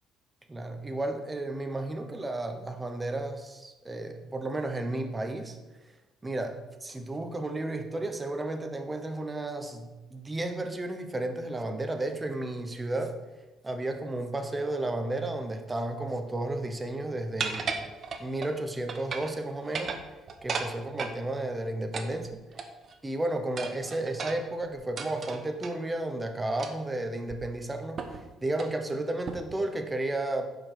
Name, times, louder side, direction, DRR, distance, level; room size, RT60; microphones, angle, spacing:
voice 1, 0.5-5.6 6.2-13.2 13.6-17.9 18.2-19.9 20.4-22.3 23.0-30.5, right 2 dB, 15° right, 5 dB, 0.9 m, -33 dB
sound 1, 17.4-18.6 18.9-19.4 19.6-21.2 21.9-22.9 23.6-25.8 26.6-26.9 27.3-27.4 28.0-28.2 28.5-28.8 29.3-29.6, right 5 dB, 35° right, 0.8 m, -35 dB
9.6 x 5.2 x 6.5 m, 1.1 s
cardioid pair, 165°, 0 cm